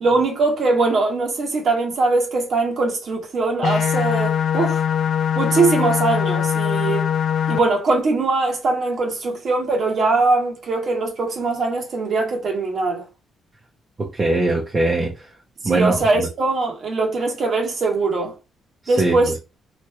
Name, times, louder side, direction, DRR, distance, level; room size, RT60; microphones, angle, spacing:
voice 1, 0.0-4.8 5.3-7.1 7.5-13.1 15.6-18.3 18.9-19.3, right 3 dB, 55° right, 1.3 m, -21 dB
sound 1, 3.6-7.6, left 8 dB, 65° left, 0.4 m, -21 dB
voice 2, 14.0-15.3 15.6-16.3 18.8-19.1, right 2 dB, 30° right, 0.8 m, -21 dB
3.1 x 2.6 x 3.3 m
cardioid pair, 90°, 0 cm